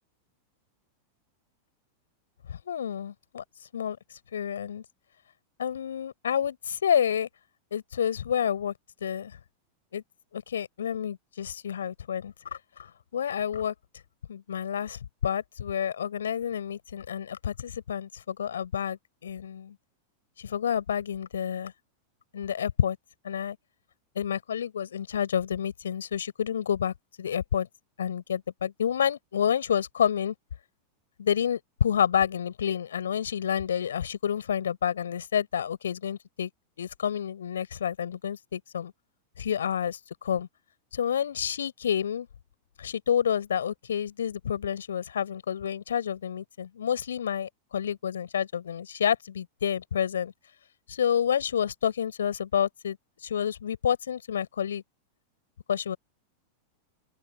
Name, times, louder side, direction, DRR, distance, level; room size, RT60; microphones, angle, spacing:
voice 1, 2.5-3.4 3.7-4.0 4.3-4.8 5.6-7.3 7.7-8.7 9.0-9.4 9.9-10.0 10.3-13.7 14.3-19.7 20.4-21.7 22.3-23.0 23.2-23.6 24.1-27.7 28.0-30.3 31.2-36.5 36.8-38.9 39.4-40.5 40.9-42.3 42.8-50.3 50.9-53.0 53.2-54.8 55.7-56.0, left 8 dB, 65° left, 6.3 m, -29 dB
open air
figure-of-eight pair, 90°, 0 cm